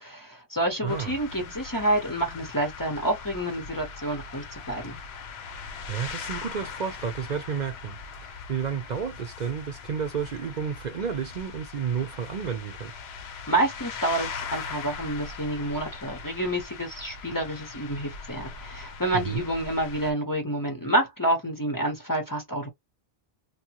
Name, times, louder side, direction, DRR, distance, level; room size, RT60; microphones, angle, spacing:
voice 1, 0.0-5.0 13.5-22.7, right 1 dB, 25° left, 0.7 m, -28 dB
voice 2, 0.8-1.1 5.9-8.0 8.5-12.9 19.1-19.4, right 7 dB, 50° right, 0.6 m, -31 dB
sound 1, 0.9-20.1, left 5 dB, 85° left, 0.9 m, -40 dB
2.9 x 2.2 x 2.8 m
omnidirectional pair, 1.0 m